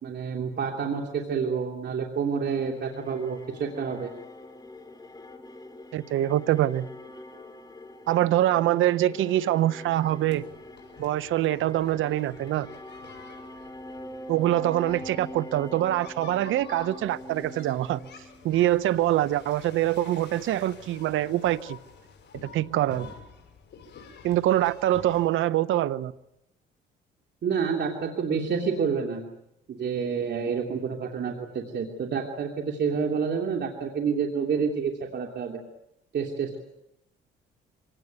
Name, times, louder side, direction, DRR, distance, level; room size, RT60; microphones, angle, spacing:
voice 1, 0.0-4.1 27.4-29.3 29.7-35.6 36.1-36.6, right 6 dB, 60° right, 3.0 m, -28 dB
sound 1, 2.4-18.7, left 1 dB, 20° left, 3.9 m, -44 dB
voice 2, 5.9-6.9 8.1-10.4 11.0-12.7 14.3-18.0 18.4-21.8 22.5-23.1 24.2-26.1, right 13 dB, 80° right, 0.9 m, -24 dB
sound 2, 9.9-25.3, left 6 dB, 60° left, 6.4 m, -49 dB
25.0 x 18.0 x 9.4 m
cardioid pair, 90°, 20 cm